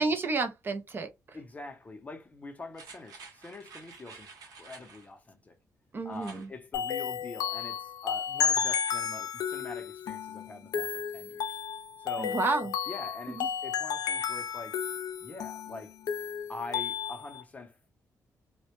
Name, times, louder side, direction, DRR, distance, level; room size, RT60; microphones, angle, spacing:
voice 1, 0.0-1.4 5.9-6.5 12.2-12.7 13.3-13.5, right 3 dB, 35° right, 0.4 m, -31 dB
voice 2, 1.3-5.6 6.0-11.6 12.0-12.4 12.9-14.8 15.2-15.9 16.5-18.0, left 3 dB, 25° left, 0.5 m, -44 dB
sound 1, 2.7-5.1 6.1-6.5 6.9-7.0, right 4 dB, 80° right, 0.9 m, -50 dB
sound 2, 6.7-17.4, left 8 dB, 90° left, 0.4 m, -33 dB
2.1 x 2.1 x 2.8 m
cardioid pair, 115°, 6 cm